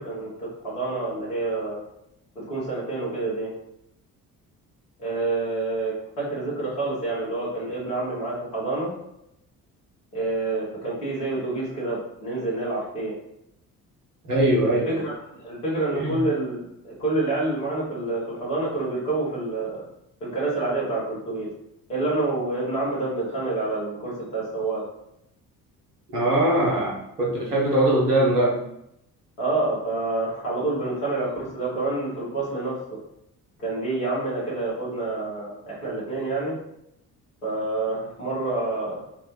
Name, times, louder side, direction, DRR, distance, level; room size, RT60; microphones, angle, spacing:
voice 1, 0.0-1.8 2.3-3.5 5.0-8.9 10.1-13.1 14.8-15.2 15.4-19.8 20.2-21.5 21.9-24.8 29.4-32.8 33.6-36.6 37.4-39.0, right 2 dB, 80° left, -7 dB, 1.3 m, -28 dB
voice 2, 14.3-15.0 15.9-16.2 26.1-28.6, right 1 dB, 90° right, -4 dB, 0.8 m, -21 dB
3.2 x 2.1 x 3.0 m, 0.79 s
figure-of-eight pair, 45°, 45 cm